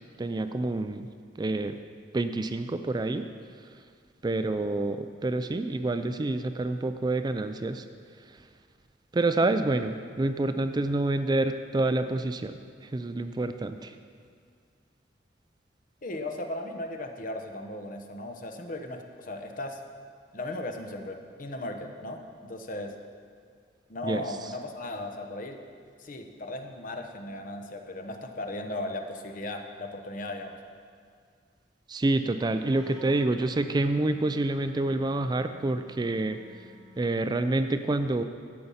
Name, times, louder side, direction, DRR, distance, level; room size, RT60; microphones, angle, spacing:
voice 1, 0.2-1.1 1.4-1.7 2.1-3.3 4.2-7.8 9.1-12.6 12.9-13.9 24.0-24.2 31.9-36.4 37.0-38.2, right 2 dB, 25° right, 9 dB, 0.4 m, -27 dB
voice 2, 16.0-19.8 20.3-22.9 23.9-25.6 26.0-30.5, left 1 dB, 50° left, 5 dB, 1.0 m, -37 dB
Wind instrument woodwind instrument, 32.3-37.2, left 3 dB, 5° right, 1.4 m, -53 dB
12.0 x 7.8 x 5.6 m, 2.1 s
head